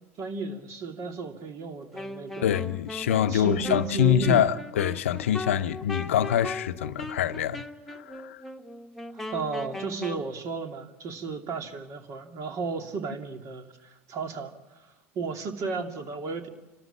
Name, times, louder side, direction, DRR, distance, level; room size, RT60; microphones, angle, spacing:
voice 1, 0.2-2.6 3.3-4.5 9.1-14.9 15.1-16.5, right 4 dB, 50° right, 2.7 m, -34 dB
Wind instrument woodwind instrument, 1.9-10.3, left 2 dB, ahead, 1.5 m, -38 dB
voice 2, 2.4-8.4, left 10 dB, 80° left, 0.7 m, -25 dB
30.0 x 13.0 x 7.4 m
hypercardioid pair, 85°, 7 cm